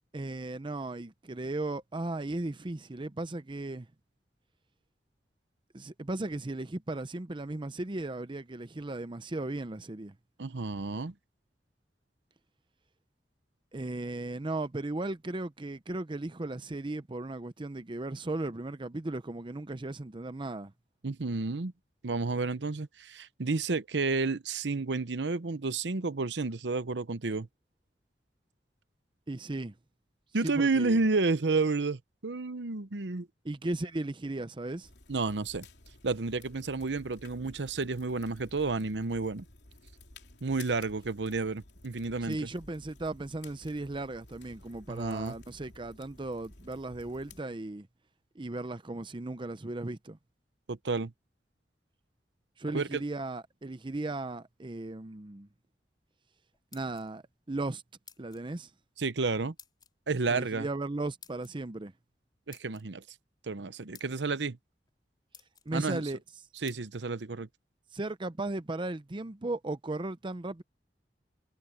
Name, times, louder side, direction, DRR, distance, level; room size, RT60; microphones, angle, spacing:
voice 1, 0.1-3.9 5.7-10.1 13.7-20.7 29.3-29.7 30.4-31.0 33.4-34.9 42.2-47.9 48.3-50.2 52.6-55.5 56.7-57.8 58.2-58.7 60.3-61.9 65.7-66.2 67.9-70.6, right 2 dB, 30° right, 0.7 m, -36 dB
voice 2, 10.4-11.1 21.0-21.7 22.0-27.5 30.3-33.3 35.1-35.7 36.0-39.4 40.4-42.4 44.9-45.3 50.7-51.1 52.7-53.0 59.0-59.5 60.1-60.7 62.5-63.0 63.4-64.6 65.7-66.0 66.6-67.5, right 3 dB, 85° right, 0.8 m, -31 dB
sound 1, 34.8-47.4, left 2 dB, 70° left, 3.5 m, -54 dB
sound 2, 56.5-57.3 58.1-58.5 59.6-59.9 61.2-61.5 62.5-62.8 63.6-63.7 63.9-64.3 64.9-65.0 65.3-65.7 66.7-66.8, left 7 dB, 25° left, 4.2 m, -53 dB
head